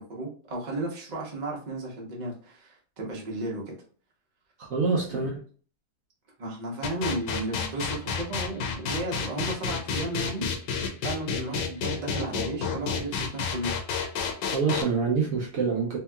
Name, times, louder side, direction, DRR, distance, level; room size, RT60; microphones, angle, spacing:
voice 1, 0.0-3.8 5.1-5.2 6.4-10.7 11.0-13.7, right 2 dB, 40° right, -2 dB, 0.6 m, -34 dB
voice 2, 4.6-5.3 14.5-16.0, right 5 dB, 60° right, -2 dB, 0.9 m, -26 dB
sound 1, 6.8-14.8, left 6 dB, 80° left, 1.2 m, -29 dB
2.9 x 2.8 x 2.2 m, 0.42 s
omnidirectional pair, 1.8 m